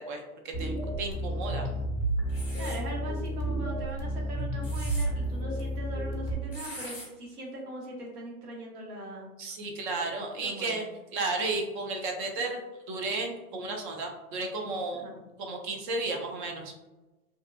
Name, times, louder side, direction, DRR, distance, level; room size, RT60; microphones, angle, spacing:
voice 1, 0.0-1.7 9.4-10.8 11.1-12.6 12.9-15.0 15.4-16.7, right 3 dB, 40° right, 3 dB, 0.4 m, -33 dB
sound 1, 0.5-6.3, right 1 dB, 25° left, 0.5 m, -31 dB
sound 2, 2.3-2.8 4.4-5.1 6.5-7.1, left 1 dB, ahead, 0.9 m, -42 dB
voice 2, 2.6-9.3 10.4-10.9 15.0-15.1, right 2 dB, 90° right, -1 dB, 1.0 m, -40 dB
2.6 x 2.4 x 2.3 m, 1.1 s
hypercardioid pair, 130°, 44 cm